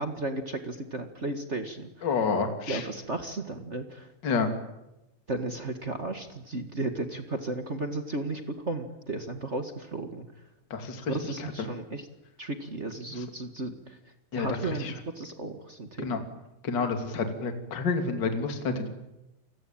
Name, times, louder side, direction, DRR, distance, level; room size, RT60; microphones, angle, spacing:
voice 1, 0.0-2.2 2.7-4.1 5.3-10.3 11.1-12.1 12.4-14.0 14.3-16.2, right 2 dB, 45° right, 7 dB, 0.8 m, -34 dB
voice 2, 2.0-2.8 4.2-4.5 10.7-11.2 14.3-14.5 14.8-14.9 16.0-16.2 16.6-18.9, left 4 dB, 30° left, 6 dB, 2.9 m, -29 dB
29.5 x 21.5 x 9.0 m, 0.95 s
omnidirectional pair, 4.3 m